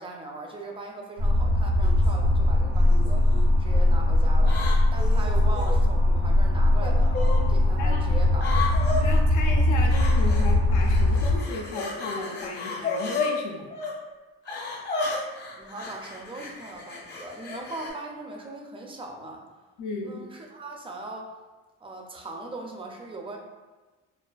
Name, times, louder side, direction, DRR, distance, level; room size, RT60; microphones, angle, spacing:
voice 1, 0.0-4.6 4.9-8.5 9.0-9.1 15.6-19.4 20.0-21.3 21.8-23.4, right 2 dB, 20° right, 1 dB, 0.4 m, -39 dB
sound 1, 1.2-11.4, left 1 dB, 90° right, 0.9 m, -21 dB
sound 2, 1.8-2.1 2.9-3.4 4.4-5.8 6.8-7.4 8.4-9.0 9.9-10.5 10.8-13.3 13.7-13.9 14.5-17.9, left 4 dB, 35° left, 0.7 m, -33 dB
voice 2, 8.9-13.7 19.8-20.3, left 3 dB, 75° left, 1 dB, 0.5 m, -35 dB
2.4 x 2.4 x 2.3 m, 1.2 s
cardioid pair, 90°, 30 cm